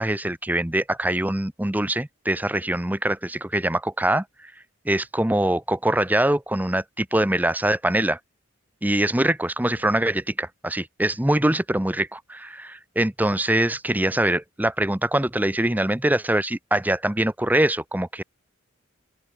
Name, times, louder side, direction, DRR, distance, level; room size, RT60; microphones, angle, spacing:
voice 1, 0.0-4.2 4.9-8.2 8.8-18.2, right 1 dB, 10° right, 0.8 m, -23 dB
open air
head